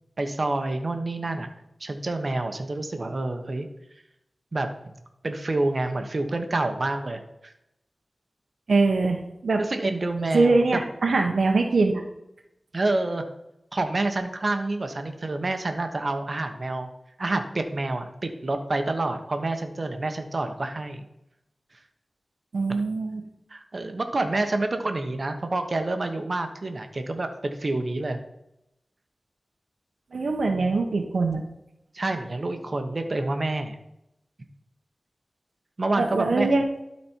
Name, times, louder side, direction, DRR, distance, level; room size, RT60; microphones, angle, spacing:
voice 1, 0.2-1.5 1.8-3.7 4.5-4.7 5.2-7.5 9.6-10.8 12.7-13.2 13.7-16.9 17.2-21.0 23.5-28.2 30.5-30.7 31.9-33.8 35.8-36.5, right 2 dB, 55° right, 6 dB, 1.0 m, -28 dB
voice 2, 8.7-9.2 9.4-9.6 10.3-12.0 22.5-23.2 30.1-31.4 36.0-36.6, right 3 dB, 90° right, 3 dB, 0.9 m, -22 dB
12.0 x 4.3 x 4.5 m, 0.84 s
wide cardioid pair, 65°, 0 cm